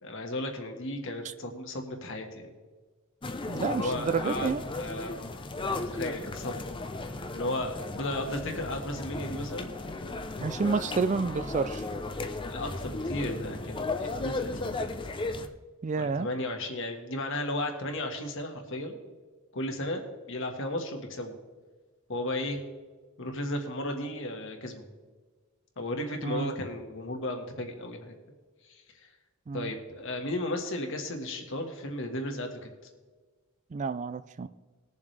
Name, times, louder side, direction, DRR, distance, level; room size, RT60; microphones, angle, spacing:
voice 1, 0.0-2.5 3.7-5.3 5.6-6.7 7.3-9.7 12.4-14.8 16.0-19.0 19.5-20.0 20.3-21.3 22.1-22.6 23.2-24.9 25.8-28.2 28.6-29.1 29.5-32.7, left 1 dB, 60° left, 3 dB, 1.6 m, -34 dB
sound 1, 3.2-15.5, left 2 dB, 25° left, 0.5 m, -35 dB
voice 2, 3.5-4.6 10.4-11.8 15.8-16.3 26.2-26.5 29.5-29.7 33.7-34.5, right 4 dB, 35° right, 13 dB, 0.3 m, -29 dB
20.0 x 7.2 x 3.3 m, 1.4 s
head